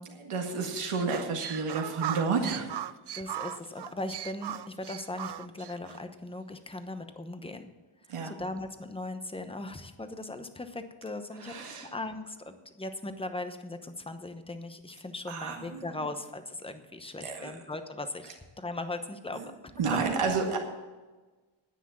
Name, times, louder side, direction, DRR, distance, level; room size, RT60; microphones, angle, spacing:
voice 1, 0.2-2.7 8.1-8.3 11.4-11.9 15.3-15.8 17.2-17.5 19.4-19.5 19.8-20.6, right 4 dB, 85° right, 1 dB, 1.9 m, -30 dB
sound 1, 0.9-6.0, right 11 dB, 55° right, 0.5 m, -38 dB
voice 2, 3.1-7.7 8.1-19.4, left 2 dB, 10° left, 8 dB, 0.9 m, -39 dB
10.0 x 10.0 x 7.3 m, 1.3 s
wide cardioid pair, 140°, 50 cm